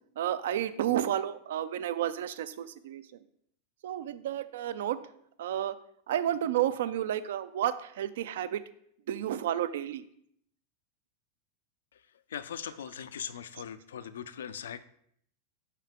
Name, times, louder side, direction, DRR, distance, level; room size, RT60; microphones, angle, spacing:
voice 1, 0.2-3.0 3.8-5.0 5.4-5.8 6.1-8.6 9.1-10.0, right 11 dB, 80° right, 14 dB, 0.4 m, -31 dB
voice 2, 12.3-14.8, left 8 dB, 90° left, 14 dB, 0.3 m, -40 dB
5.6 x 4.7 x 3.6 m, 0.69 s
hypercardioid pair, 115°, 0 cm